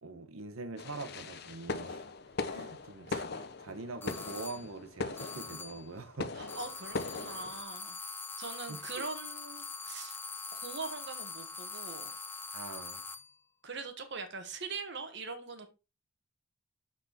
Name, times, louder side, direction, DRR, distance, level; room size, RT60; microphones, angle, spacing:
voice 1, 0.0-2.0 2.5-6.3 8.7-9.0 12.5-13.0, right 3 dB, 85° right, 1.0 m, -44 dB
sound 1, 0.8-7.6, left 3 dB, 50° left, 0.7 m, -40 dB
sound 2, 4.0-4.7 5.2-5.9 6.5-13.3, left 4 dB, 10° left, 0.4 m, -43 dB
voice 2, 6.3-8.0 8.4-10.2 10.5-12.1 13.6-15.7, right 4 dB, 55° right, 1.4 m, -42 dB
6.6 x 5.9 x 4.3 m
head